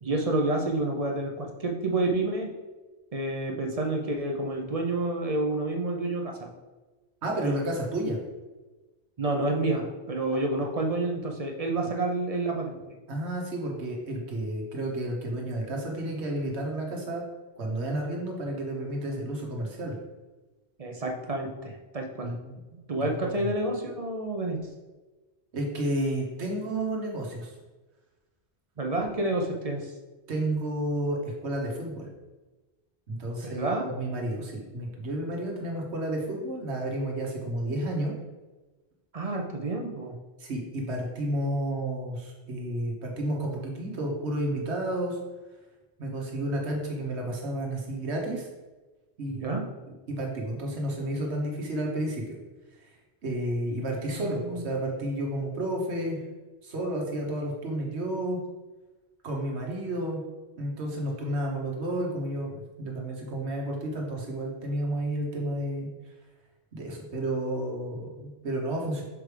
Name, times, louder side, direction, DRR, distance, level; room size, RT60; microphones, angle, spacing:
voice 1, 0.0-2.5 3.1-6.5 7.4-7.5 9.2-12.8 20.8-22.3 22.9-24.6 28.8-29.9 33.4-33.9 39.1-40.1 49.3-49.6 54.1-54.6, right 2 dB, 40° right, 2 dB, 0.6 m, -29 dB
voice 2, 7.2-8.2 13.1-17.2 17.6-20.0 22.2-22.6 23.1-23.4 25.5-27.5 30.3-32.1 33.1-38.1 40.4-45.2 46.0-48.5 49.2-49.6 50.2-52.4 53.2-56.2 56.6-58.4 59.2-60.2 60.6-65.9 66.7-69.0, right 1 dB, 80° right, 0 dB, 1.4 m, -31 dB
6.0 x 4.7 x 3.3 m, 1.2 s
omnidirectional pair, 1.1 m